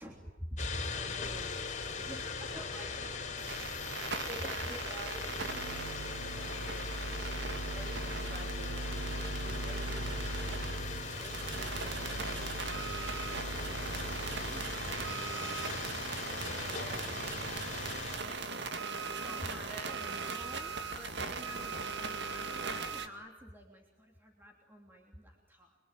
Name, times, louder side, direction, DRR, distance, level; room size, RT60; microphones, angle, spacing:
voice 1, 0.0-0.9 2.1-3.2 4.4-4.9 6.1-6.6 14.4-16.5 16.8-17.2 19.2-25.8, equal, 10° right, 0 dB, 3.2 m, -48 dB
sound 1, 0.6-18.2, left 4 dB, 40° left, 4.3 m, -40 dB
voice 2, 0.9-2.1 2.5-3.1 3.6-5.6 6.4-6.9 7.2-9.0 9.4-10.2 11.2-13.0 16.6-17.2 18.2-18.4 19.6-20.2 21.4-21.7, equal, 40° right, 3 dB, 6.7 m, -50 dB
sound 2, 3.4-23.1, right 3 dB, 60° right, 2.2 m, -38 dB
26.5 x 24.0 x 9.2 m, 0.97 s
head